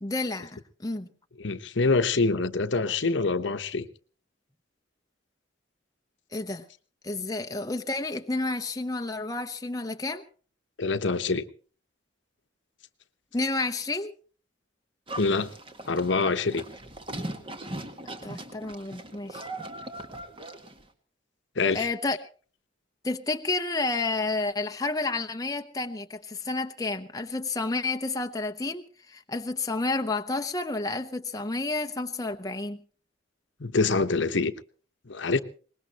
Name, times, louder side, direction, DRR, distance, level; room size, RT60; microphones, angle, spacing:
voice 1, 0.0-1.1 6.3-6.6 7.0-10.2 13.3-14.1 18.2-19.4 21.7-22.2 23.0-32.8, left 3 dB, 20° left, 0.8 m, -30 dB
voice 2, 1.4-3.9 10.8-11.4 15.2-15.5 15.9-16.6 21.6-21.9 33.6-34.5 35.1-35.4, left 3 dB, 65° left, 1.0 m, -25 dB
Livestock farm animals working animals, 15.1-20.8, right 1 dB, 25° right, 1.8 m, -39 dB
23.5 x 20.0 x 3.0 m
head